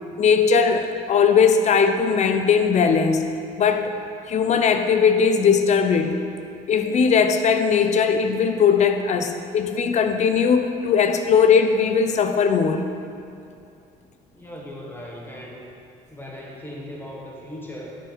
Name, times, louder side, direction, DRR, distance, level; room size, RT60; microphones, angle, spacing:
voice 1, 0.2-3.3 3.6-3.9 4.3-6.2 6.7-12.8, left 6 dB, 45° left, 7 dB, 0.6 m, -19 dB
voice 2, 14.3-15.7 16.1-18.0, left 1 dB, 10° left, -3 dB, 1.5 m, -38 dB
8.7 x 4.9 x 4.4 m, 2.5 s
cardioid pair, 110°, 17 cm